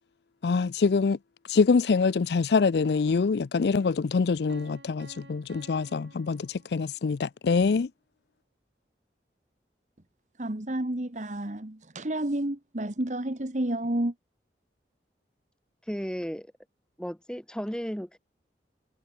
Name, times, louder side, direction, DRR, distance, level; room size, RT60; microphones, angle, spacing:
voice 1, 0.4-1.2 1.5-7.9, left 4 dB, 70° left, 0.4 m, -25 dB
Piano, 4.5-7.3, right 2 dB, 80° right, 7.7 m, -53 dB
voice 2, 10.4-14.1, right 1 dB, 40° right, 1.5 m, -30 dB
voice 3, 15.9-16.5 17.0-18.2, equal, 5° left, 1.4 m, -34 dB
head